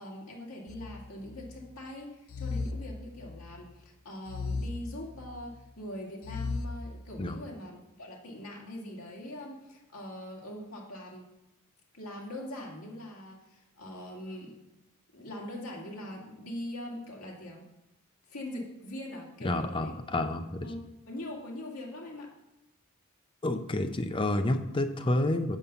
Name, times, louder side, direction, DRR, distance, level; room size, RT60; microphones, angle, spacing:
voice 1, 0.0-11.3 11.9-14.5 15.1-17.7 18.3-19.9 20.6-22.3, left 1 dB, 85° left, -2 dB, 2.2 m, -42 dB
sound 1, 0.7-1.6 2.3-3.6 4.3-5.6 6.2-7.4, left 3 dB, 70° left, 0.6 m, -37 dB
voice 2, 19.4-20.7 23.4-25.6, left 1 dB, 25° left, 8 dB, 0.6 m, -29 dB
7.3 x 5.4 x 6.8 m, 0.89 s
head